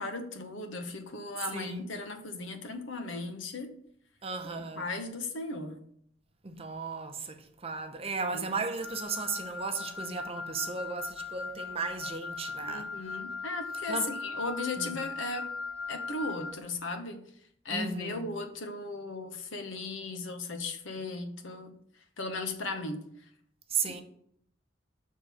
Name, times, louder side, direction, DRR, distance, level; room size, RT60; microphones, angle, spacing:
voice 1, 0.0-3.7 4.6-5.8 8.3-8.5 12.6-15.5 15.9-17.2 17.6-21.8 22.2-23.0 23.9-24.0, left 3 dB, 80° left, 1.0 m, -37 dB
voice 2, 1.5-1.9 4.2-4.9 6.4-12.9 13.9-14.1 14.8-15.0 17.7-18.3 23.7-24.0, right 4 dB, 30° right, 0.7 m, -35 dB
Wind instrument woodwind instrument, 8.8-16.6, left 4 dB, 5° left, 1.2 m, -39 dB
6.5 x 3.7 x 5.9 m
head